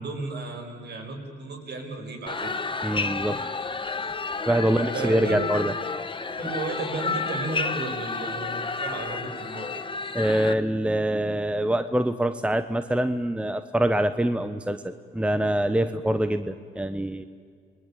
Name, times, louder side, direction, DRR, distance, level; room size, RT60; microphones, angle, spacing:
voice 1, 0.0-2.5 4.7-5.5 6.4-9.8, right 3 dB, 55° right, 3 dB, 6.5 m, -34 dB
sound 1, 2.3-10.5, left 4 dB, 25° left, 1.3 m, -31 dB
voice 2, 2.8-3.5 4.5-5.7 10.1-17.2, right 1 dB, 5° right, 10 dB, 1.0 m, -25 dB
28.5 x 21.5 x 9.2 m, 2.1 s
cardioid pair, 90°, 20 cm